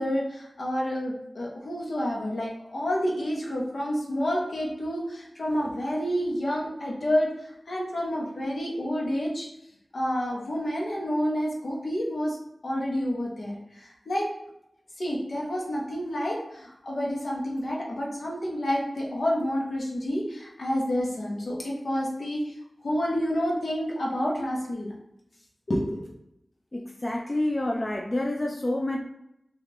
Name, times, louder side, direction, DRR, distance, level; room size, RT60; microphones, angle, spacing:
voice 1, 0.0-7.3 7.7-9.5 9.9-12.4 12.6-14.3 15.0-22.4 22.8-24.9 25.7-26.1, equal, 80° left, -3 dB, 0.9 m, -29 dB
voice 2, 26.7-29.0, left 1 dB, 30° left, 1 dB, 0.4 m, -28 dB
3.4 x 2.4 x 2.9 m, 0.80 s
wide cardioid pair, 75°, 0 cm